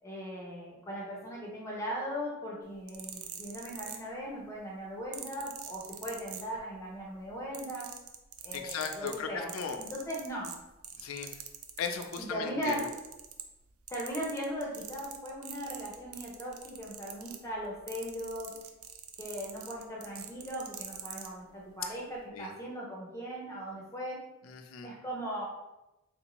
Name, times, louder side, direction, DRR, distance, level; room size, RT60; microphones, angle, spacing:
voice 1, 0.0-7.9 8.4-9.5 9.8-10.5 12.2-12.9 13.9-18.5 19.2-24.2 24.8-25.4, equal, 15° left, -4 dB, 0.6 m, -38 dB
sound 1, 2.7-4.4 5.1-6.9 7.2-12.2 12.6-13.6 13.9-21.3 22.0-22.2, right 9 dB, 80° right, 0.4 m, -44 dB
voice 2, 8.5-9.8 11.0-11.4 11.8-12.9 22.3-22.5 24.4-24.9, left 6 dB, 70° left, 5 dB, 0.4 m, -37 dB
3.6 x 2.5 x 2.9 m, 0.98 s
head